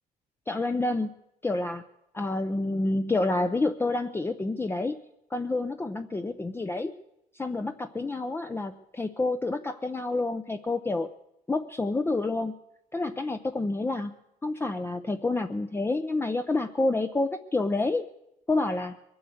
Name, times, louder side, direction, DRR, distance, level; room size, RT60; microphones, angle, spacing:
voice 1, 0.5-1.1 1.4-1.8 2.1-5.0 5.3-6.9 7.3-11.1 11.5-12.5 12.9-14.1 14.4-18.0 18.5-19.0, left 2 dB, 15° left, 7 dB, 0.7 m, -28 dB
22.0 x 7.8 x 7.9 m, 0.82 s
cardioid pair, 110°, 17 cm